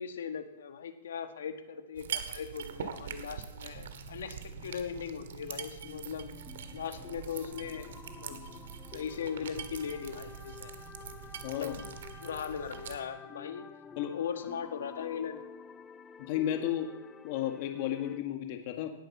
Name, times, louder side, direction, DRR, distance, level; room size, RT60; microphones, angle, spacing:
voice 1, 0.0-6.4 6.7-8.4 8.9-10.7 11.4-11.9 12.2-13.7 14.1-15.4, left 7 dB, 85° left, 7 dB, 1.7 m, -39 dB
sound 1, 1.9-13.0, right 8 dB, 70° right, 1.9 m, -43 dB
sound 2, 3.7-18.2, left 6 dB, 10° left, 0.7 m, -50 dB
voice 2, 11.4-11.7 14.0-14.1 16.2-16.9 17.2-18.9, left 11 dB, 40° left, 5 dB, 1.7 m, -33 dB
19.0 x 9.4 x 7.3 m, 0.96 s
hypercardioid pair, 165°, 0 cm